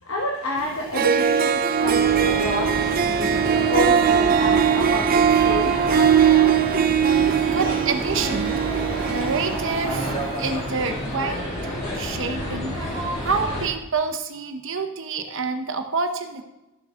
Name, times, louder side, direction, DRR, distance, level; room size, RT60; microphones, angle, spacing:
voice 1, 0.0-6.1, left 1 dB, 60° left, -2 dB, 1.5 m, -29 dB
Harp, 0.6-0.7 0.9-10.5, right 8 dB, 40° right, 0.4 m, -20 dB
sound 1, 1.8-13.7, left 1 dB, 30° left, 2.7 m, -30 dB
voice 2, 7.5-8.5 9.1-16.4, right 4 dB, 60° right, 6 dB, 0.9 m, -28 dB
13.0 x 7.7 x 3.8 m, 0.99 s
head